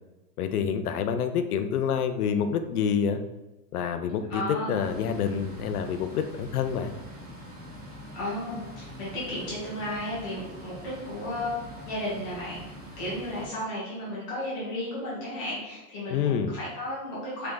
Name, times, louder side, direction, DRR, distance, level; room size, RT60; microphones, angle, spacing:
voice 1, 0.4-3.2 3.7-6.9 16.1-16.5, left 7 dB, 65° left, 8 dB, 0.6 m, -27 dB
voice 2, 4.3-4.9 8.1-11.5 11.8-12.6 13.0-17.5, left 1 dB, 15° left, -8 dB, 0.7 m, -34 dB
sound 1, 4.8-13.5, equal, 25° right, 0.4 m, -44 dB
3.9 x 3.4 x 3.7 m, 1.0 s
supercardioid pair, 180°, 48 cm